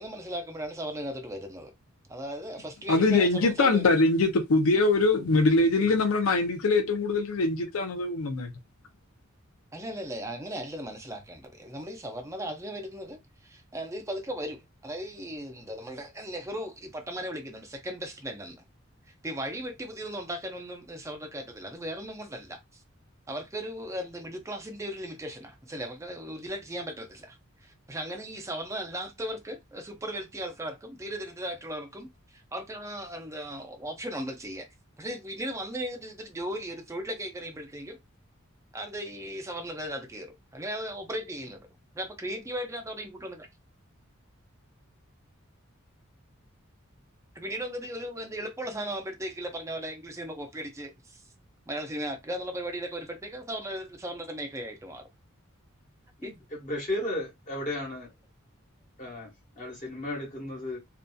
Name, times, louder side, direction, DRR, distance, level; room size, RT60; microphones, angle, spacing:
voice 1, 0.0-1.7 2.1-3.9 9.7-18.6 19.2-22.8 23.3-27.4 27.6-34.7 35.0-38.0 38.7-41.7 41.9-43.5 47.3-51.2 51.7-55.0 56.2-56.3, equal, 15° right, 0.5 m, -37 dB
voice 2, 2.9-8.5, left 3 dB, 85° left, 0.5 m, -23 dB
voice 3, 56.2-58.1 59.0-60.8, left 1 dB, 40° left, 1.1 m, -34 dB
2.6 x 2.4 x 2.2 m
head